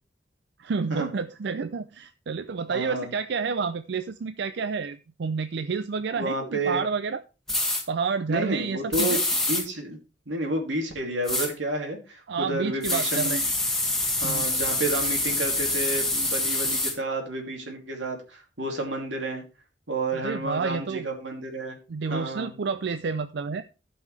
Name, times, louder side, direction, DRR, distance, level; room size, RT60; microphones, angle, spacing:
voice 1, 0.6-7.2 7.9-9.2 12.3-13.4 14.2-14.5 20.2-21.0 21.9-23.6, right 5 dB, 65° right, 12 dB, 0.4 m, -29 dB
voice 2, 2.7-3.1 6.2-6.8 8.3-10.0 10.3-13.5 14.2-19.4 19.9-21.8 22.1-22.5, right 2 dB, 90° right, 2 dB, 2.6 m, -30 dB
sound 1, 7.5-7.8 8.9-9.6 11.2-11.5 12.8-16.9, left 2 dB, 5° left, 1.9 m, -26 dB
15.5 x 5.5 x 3.2 m, 0.31 s
head